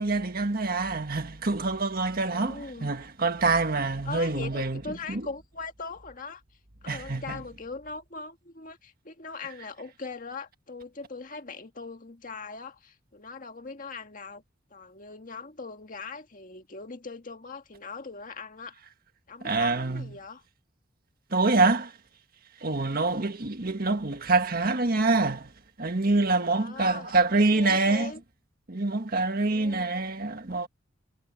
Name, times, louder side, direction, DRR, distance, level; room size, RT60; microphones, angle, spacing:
voice 1, 0.0-4.8 5.1-5.3 6.9-7.4 19.4-20.1 21.3-21.9 22.6-25.5 25.8-28.1 28.7-30.7, right 3 dB, 50° right, 1.7 m, -26 dB
voice 2, 2.2-3.0 4.1-6.4 6.8-14.4 14.7-18.8 19.3-20.4 23.0-23.2 26.4-28.2 29.4-30.0, left 4 dB, 45° left, 1.8 m, -40 dB
head